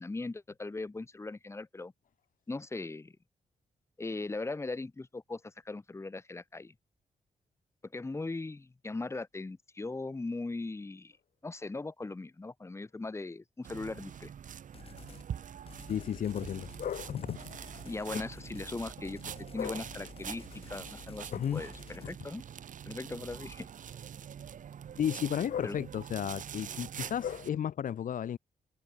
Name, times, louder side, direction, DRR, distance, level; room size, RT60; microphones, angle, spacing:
voice 1, 0.0-1.9 2.5-3.1 4.0-6.7 7.8-11.1 11.4-14.3 17.8-19.2 19.5-22.4 22.9-23.7 25.6-25.8, left 3 dB, 20° left, 2.2 m, -39 dB
sound 1, 13.6-27.5, right 8 dB, 75° right, 3.2 m, -45 dB
sound 2, 14.7-15.3 15.7-22.1, left 5 dB, 45° left, 5.2 m, -52 dB
voice 2, 15.9-17.5 18.1-18.2 19.2-19.8 21.3-21.6 22.0-22.1 25.0-28.4, left 9 dB, 85° left, 2.4 m, -34 dB
wide cardioid pair, 130°, 13 cm